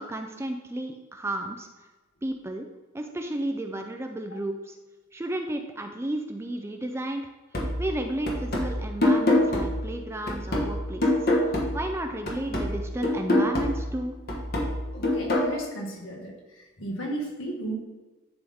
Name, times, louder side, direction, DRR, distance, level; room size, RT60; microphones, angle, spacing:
voice 1, 0.0-1.7 2.2-2.7 2.9-4.8 5.1-7.3 7.8-14.2, right 1 dB, 10° right, 4 dB, 0.4 m, -33 dB
sound 1, 7.5-12.0 12.3-15.5, left 1 dB, 45° left, 1.3 m, -26 dB
voice 2, 14.9-17.7, right 1 dB, 70° left, -1 dB, 1.8 m, -34 dB
10.5 x 3.9 x 3.6 m, 1.2 s
head